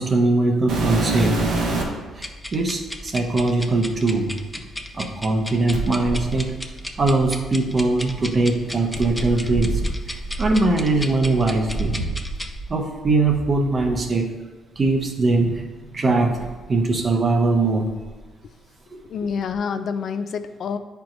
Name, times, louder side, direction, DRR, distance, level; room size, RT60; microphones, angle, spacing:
voice 1, 0.0-1.4 2.2-4.3 4.9-6.6 7.0-9.7 10.1-11.9 12.7-14.3 14.8-17.9 18.9-19.0, right 3 dB, 40° right, 3 dB, 0.9 m, -21 dB
sound 1, 0.7-2.1 2.9-3.0 5.7-7.8 8.9-12.7 13.0-14.0 14.8-14.9 15.5-15.6 16.3-17.4 17.7-18.2 19.5-19.6, right 2 dB, 85° right, 1.3 m, -28 dB
sound 2, 2.1-12.5, left 1 dB, 5° left, 0.5 m, -36 dB
voice 2, 19.0-20.8, left 6 dB, 60° left, 10 dB, 0.4 m, -27 dB
9.1 x 4.5 x 2.6 m, 1.3 s
cardioid pair, 90°, 0 cm